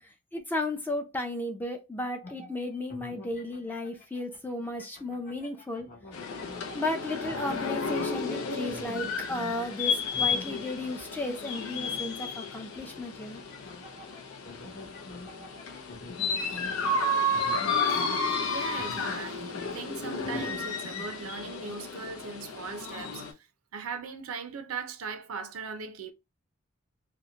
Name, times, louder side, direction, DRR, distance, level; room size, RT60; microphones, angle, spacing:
voice 1, 0.3-5.9 6.7-13.4, left 1 dB, 10° left, 0.5 m, -34 dB
sound 1, 2.2-21.1, left 2 dB, 40° left, 1.0 m, -47 dB
sound 2, 6.1-23.3, left 3 dB, 80° left, 0.5 m, -32 dB
voice 2, 18.4-23.5 23.7-26.1, right 5 dB, 85° right, 0.5 m, -39 dB
2.8 x 2.1 x 2.3 m
head